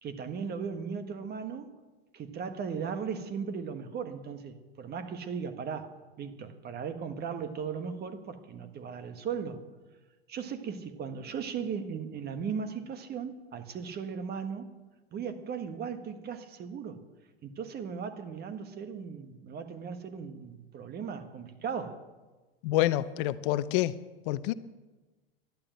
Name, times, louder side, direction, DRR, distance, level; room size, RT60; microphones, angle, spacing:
voice 1, 0.0-1.7 2.1-9.6 10.3-14.7 15.1-17.0 17.4-22.0, right 6 dB, 30° right, 1.5 m, -37 dB
voice 2, 22.6-23.9 24.3-24.5, left 15 dB, 55° left, 0.7 m, -27 dB
12.0 x 11.5 x 9.1 m
hypercardioid pair, 110°, 31 cm